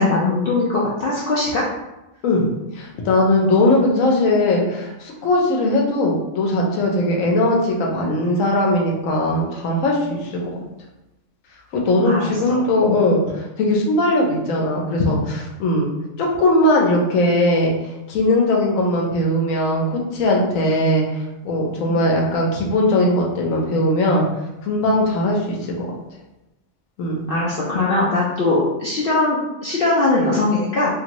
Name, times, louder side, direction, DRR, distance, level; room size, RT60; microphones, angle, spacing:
voice 1, 0.0-1.7 12.0-12.3 12.9-13.0 21.9-22.0 27.3-31.0, left 2 dB, 60° left, -5 dB, 0.6 m, -20 dB
voice 2, 2.7-10.5 11.7-15.2 15.6-15.9 16.2-17.7 18.1-24.2 24.6-25.9 27.0-27.3, left 1 dB, 80° left, -1 dB, 1.1 m, -19 dB
2.8 x 2.6 x 2.9 m, 0.96 s
omnidirectional pair, 1.4 m